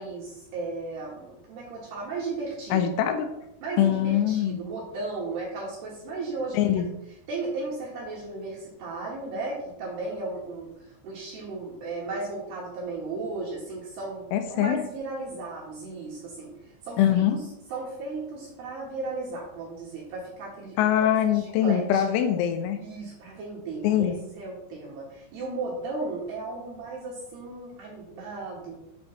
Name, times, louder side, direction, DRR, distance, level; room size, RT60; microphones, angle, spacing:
voice 1, 0.0-2.9 3.6-6.8 7.3-10.7 11.0-16.5 16.8-17.0 17.3-17.4 17.7-21.0 21.3-22.0 22.8-28.8, right 3 dB, 65° right, -4 dB, 2.8 m, -35 dB
voice 2, 2.7-3.3 3.8-4.6 6.5-6.9 14.3-14.8 17.0-17.4 20.8-22.8 23.8-24.2, left 10 dB, 85° left, 7 dB, 2.8 m, -23 dB
7.7 x 3.2 x 5.7 m, 0.82 s
omnidirectional pair, 5.8 m